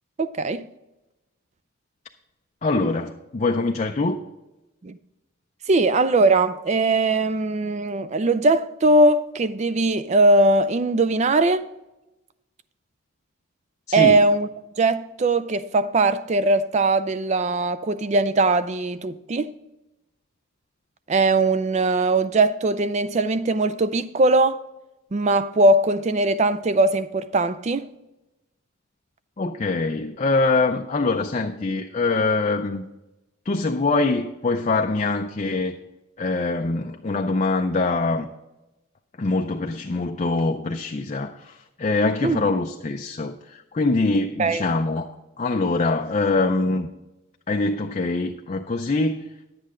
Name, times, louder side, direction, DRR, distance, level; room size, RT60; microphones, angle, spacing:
voice 1, 0.2-0.6 4.8-5.0 5.7-11.7 13.9-14.5 14.8-19.5 21.1-24.6 25.1-27.9 42.2-42.5 44.4-44.6, right 2 dB, 35° right, 0.4 m, -20 dB
voice 2, 2.6-4.2 13.9-14.2 29.4-32.8 33.5-35.8 36.2-38.3 39.2-45.1 45.4-46.9 47.5-49.3, left 3 dB, 35° left, 0.4 m, -24 dB
10.5 x 8.5 x 3.7 m
head